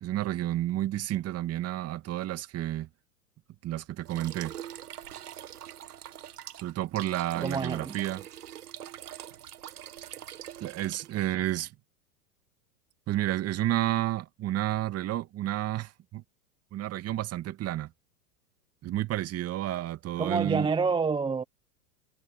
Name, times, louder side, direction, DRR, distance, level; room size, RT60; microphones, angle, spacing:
voice 1, 0.0-2.9 3.6-4.5 6.6-8.2 10.6-11.7 13.1-16.2 16.7-17.9 18.8-20.7, right 14 dB, 35° right, 2.5 m, -31 dB
sound 1, 4.0-11.2, right 11 dB, 80° right, 1.3 m, -44 dB
voice 2, 7.4-8.0 20.2-21.4, right 5 dB, 10° right, 0.9 m, -28 dB
hypercardioid pair, 105°, 45 cm